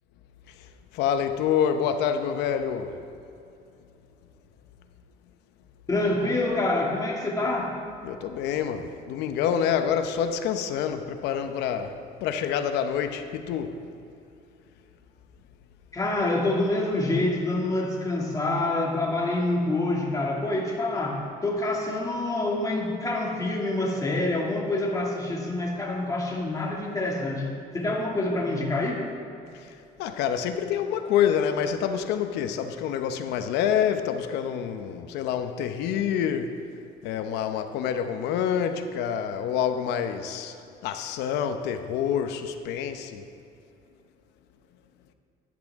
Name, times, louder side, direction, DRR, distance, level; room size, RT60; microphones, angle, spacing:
voice 1, 0.9-2.9 8.0-13.7 30.0-36.5 37.0-40.5 40.8-43.2, left 8 dB, 90° left, 0.8 m, -27 dB
voice 2, 5.9-7.8 15.9-27.5 27.7-29.0, left 2 dB, 20° left, 2.4 m, -26 dB
14.5 x 10.5 x 3.6 m
cardioid pair, 110°, 17 cm